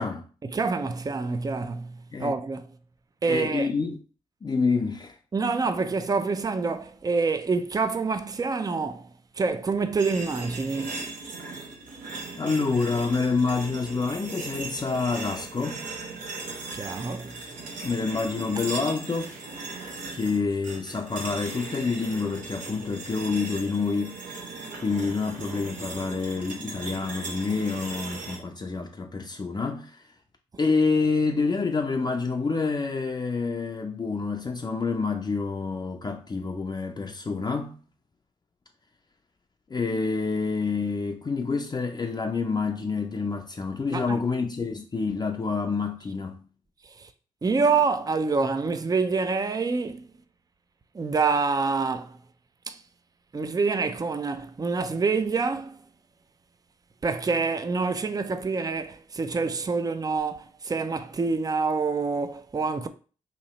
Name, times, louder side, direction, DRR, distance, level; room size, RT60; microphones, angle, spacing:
voice 1, 0.4-2.7 3.2-3.7 5.3-9.1 9.4-11.1 16.7-17.3 43.9-44.2 47.0-47.1 47.4-50.1 50.9-52.2 52.7-52.8 53.3-55.8 57.0-62.9, right 4 dB, 25° right, 0.5 m, -27 dB
voice 2, 3.3-4.0 4.4-5.2 12.4-15.8 17.8-19.3 20.1-24.2 24.8-30.1 30.6-37.8 39.7-46.4, left 4 dB, 30° left, 0.5 m, -27 dB
sound 1, 10.0-28.4, right 3 dB, 80° right, 0.9 m, -38 dB
3.0 x 2.7 x 4.0 m
supercardioid pair, 50°, 14 cm